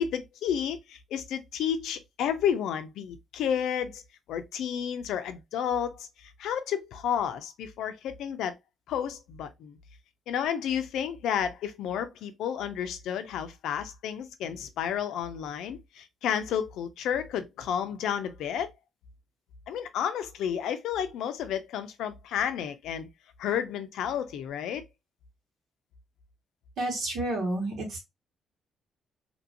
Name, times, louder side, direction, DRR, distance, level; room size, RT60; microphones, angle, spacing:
voice 1, 0.0-4.0 4.3-8.5 8.9-9.8 10.3-18.7 19.7-23.1 23.4-24.8, left 8 dB, 85° left, 0.5 m, -31 dB
voice 2, 26.8-28.0, right 1 dB, 75° right, 1.6 m, -30 dB
2.9 x 2.6 x 2.8 m
cardioid pair, 90°, 0 cm